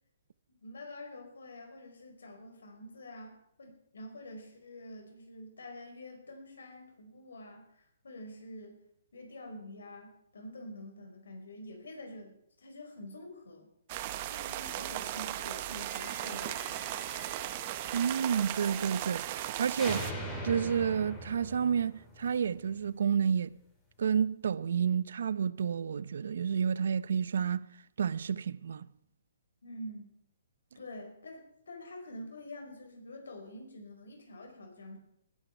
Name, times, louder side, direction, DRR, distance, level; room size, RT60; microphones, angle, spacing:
voice 1, 0.5-8.8 9.1-13.7 14.2-17.1 29.6-30.1 30.7-35.0, left 1 dB, 85° left, 4.8 m, -47 dB
sound 1, 13.9-20.1, right 13 dB, 35° right, 0.9 m, -37 dB
sound 2, 15.6-19.5 19.8-22.8, equal, 10° left, 3.6 m, -44 dB
voice 2, 17.9-20.1 20.4-23.5 24.0-27.7 28.0-28.9, right 7 dB, 70° right, 0.7 m, -30 dB
19.5 x 11.0 x 4.5 m
hypercardioid pair, 155°, 0 cm